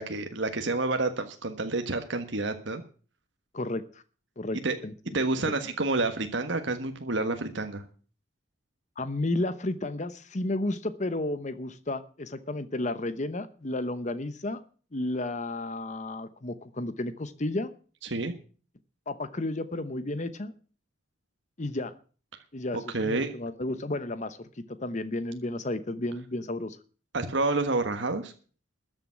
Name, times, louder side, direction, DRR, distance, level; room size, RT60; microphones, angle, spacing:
voice 1, 0.0-2.8 4.6-4.7 5.1-7.8 18.0-18.3 22.9-23.3 27.1-28.3, right 3 dB, 65° right, 6 dB, 1.5 m, -29 dB
voice 2, 3.5-4.0 4.4-4.9 5.6-5.7 9.0-14.6 14.9-17.7 19.1-20.5 21.6-21.9 22.5-26.8, left 2 dB, 35° left, 13 dB, 0.9 m, -32 dB
13.5 x 7.2 x 9.7 m, 0.40 s
head